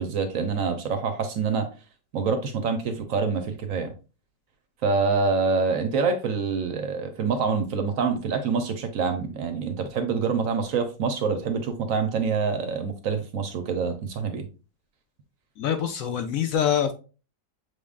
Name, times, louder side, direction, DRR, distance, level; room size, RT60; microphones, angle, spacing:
voice 1, 0.0-1.7 2.1-3.9 4.8-14.5, right 5 dB, 65° right, 7 dB, 0.9 m, -26 dB
voice 2, 15.6-16.9, left 9 dB, 70° left, 7 dB, 0.9 m, -25 dB
6.3 x 3.5 x 2.3 m, 0.34 s
omnidirectional pair, 1.7 m